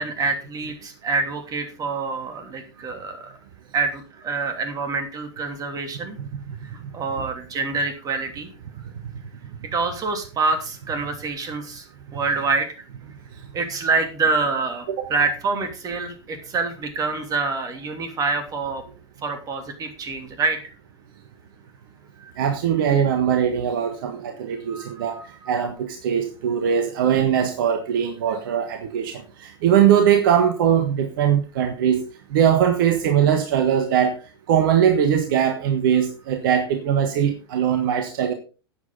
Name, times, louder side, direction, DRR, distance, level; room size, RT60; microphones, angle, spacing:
voice 1, 0.0-3.3 3.7-6.2 6.9-8.5 9.7-11.8 12.1-12.7 13.5-18.8 19.2-20.6 22.2-22.3 24.7-25.2, right 4 dB, 25° right, 6 dB, 3.0 m, -26 dB
voice 2, 6.2-6.6 7.2-7.3 14.9-15.0 22.4-25.2 25.5-34.2 34.5-38.3, right 9 dB, 55° right, 7 dB, 1.4 m, -21 dB
12.5 x 8.7 x 4.0 m, 0.35 s
figure-of-eight pair, 90°, 13 cm